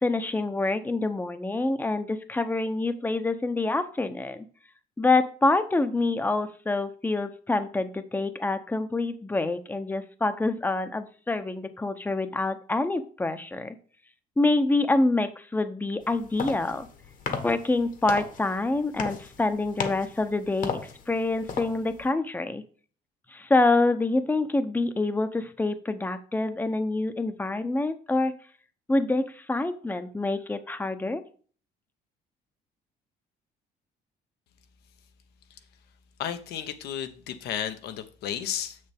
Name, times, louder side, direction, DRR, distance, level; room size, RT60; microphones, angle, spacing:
voice 1, 0.0-4.4 5.0-13.8 14.4-16.9 17.4-20.8 21.1-22.6 23.3-28.3 28.9-31.2, left 2 dB, 10° left, 10 dB, 0.7 m, -26 dB
sound 1, 16.0-22.1, left 5 dB, 50° left, 1.3 m, -36 dB
voice 2, 36.2-38.8, left 9 dB, 75° left, 9 dB, 1.0 m, -33 dB
6.8 x 6.7 x 3.5 m, 0.42 s
cardioid pair, 110°, 17 cm